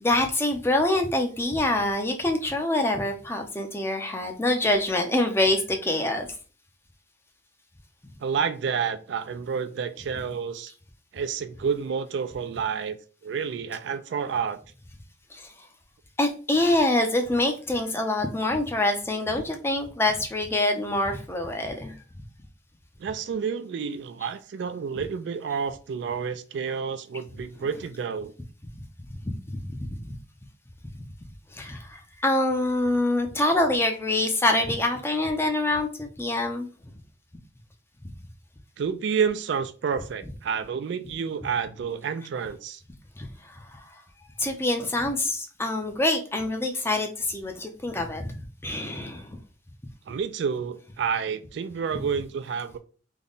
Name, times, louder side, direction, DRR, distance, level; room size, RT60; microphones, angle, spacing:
voice 1, 0.0-6.3 16.2-21.9 29.2-30.0 31.6-36.7 44.4-48.3 48.6-49.2, left 1 dB, 10° left, 0.5 m, -25 dB
voice 2, 8.2-10.7 11.1-13.0 13.2-14.6 23.0-28.3 38.8-42.8 50.1-52.8, right 6 dB, 60° right, 0.3 m, -29 dB
3.5 x 2.1 x 3.8 m
head